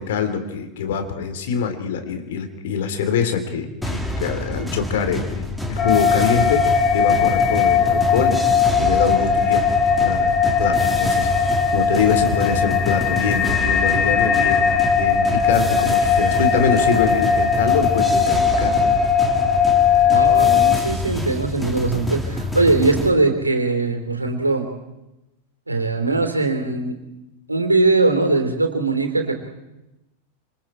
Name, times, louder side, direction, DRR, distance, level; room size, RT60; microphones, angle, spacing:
voice 1, 0.0-8.4 8.8-9.6 10.0-19.0, left 7 dB, 55° left, 7 dB, 3.5 m, -24 dB
sound 1, 3.8-23.1, left 1 dB, 5° left, 3.1 m, -28 dB
sound 2, 5.8-20.8, left 6 dB, 30° left, 4.4 m, -19 dB
voice 2, 20.1-24.7 25.7-27.0 27.5-29.3, right 3 dB, 85° right, 5 dB, 3.3 m, -20 dB
28.0 x 27.0 x 4.5 m, 0.98 s
figure-of-eight pair, 90°, 0 cm